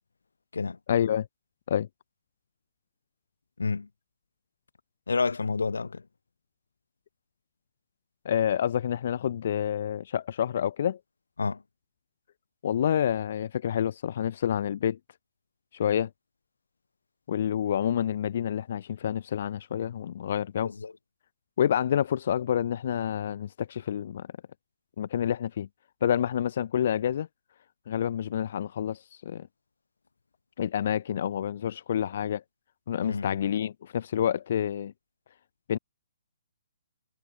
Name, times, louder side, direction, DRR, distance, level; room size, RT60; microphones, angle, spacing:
voice 1, 0.9-1.3 1.7-1.9 8.2-11.0 12.6-15.0 15.7-16.1 17.3-20.7 21.6-24.3 25.0-25.7 26.0-27.3 27.9-29.5 30.6-32.4 32.9-34.9 35.7-35.8, left 9 dB, 55° left, 0.8 m, -28 dB
voice 2, 3.6-3.9 5.1-6.0 11.4-11.6 20.6-20.9 33.0-33.4, left 4 dB, 85° left, 2.8 m, -29 dB
hypercardioid pair, 145°, 0 cm